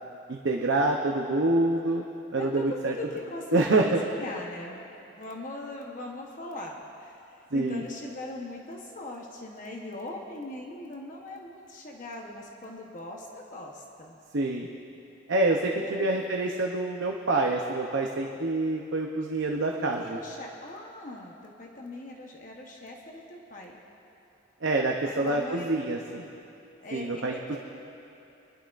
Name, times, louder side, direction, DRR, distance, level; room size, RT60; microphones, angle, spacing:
voice 1, 0.3-2.0 2.3-2.9 3.5-4.0 7.5-7.8 14.3-14.7 15.3-20.2 24.6-26.3 26.9-27.6, right 2 dB, 70° right, 0 dB, 0.7 m, -26 dB
voice 2, 2.3-4.9 5.2-14.2 15.8-16.3 19.8-23.8 25.0-25.7 26.8-27.6, left 2 dB, 40° left, -1 dB, 1.0 m, -40 dB
26.5 x 11.5 x 2.5 m, 2.8 s
head